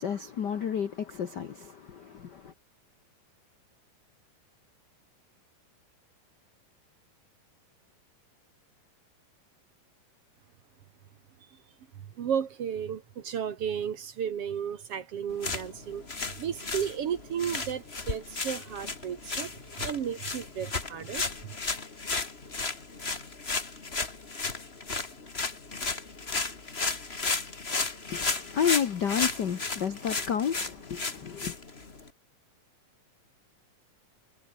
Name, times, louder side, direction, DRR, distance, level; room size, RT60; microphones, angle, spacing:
voice 1, 0.0-2.5 28.1-31.5, left 8 dB, 70° left, 1.0 m, -31 dB
voice 2, 12.2-19.5 19.8-21.2, right 8 dB, 55° right, 1.9 m, -33 dB
sound 1, 15.3-32.1, left 3 dB, 20° left, 1.9 m, -34 dB
omnidirectional pair, 3.9 m